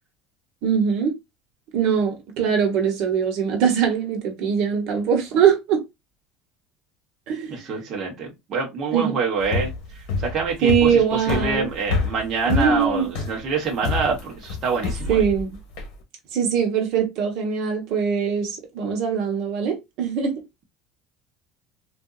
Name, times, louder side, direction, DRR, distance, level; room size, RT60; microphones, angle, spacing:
voice 1, 0.6-1.1 1.7-5.8 7.3-7.6 8.9-9.1 10.6-11.7 12.5-13.0 15.1-15.6 16.3-20.3, right 7 dB, 55° right, 1.0 m, -22 dB
voice 2, 7.5-9.7 10.2-15.2, right 4 dB, 30° right, 1.0 m, -26 dB
sound 1, 9.4-15.9, left 4 dB, 60° left, 1.2 m, -27 dB
3.6 x 2.6 x 2.3 m
cardioid pair, 165°, 0 cm